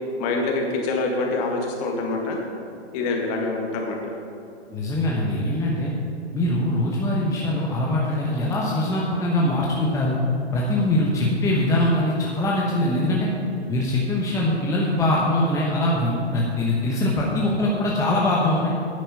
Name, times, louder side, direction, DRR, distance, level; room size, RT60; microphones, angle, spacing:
voice 1, 0.2-2.4 2.9-4.1, left 3 dB, 35° left, 1 dB, 1.9 m, -25 dB
voice 2, 4.7-5.9 6.3-10.2 10.5-13.3 13.7-18.7, left 1 dB, 10° left, -4 dB, 1.1 m, -22 dB
9.6 x 9.0 x 5.5 m, 2.6 s
hypercardioid pair, 130°, 34 cm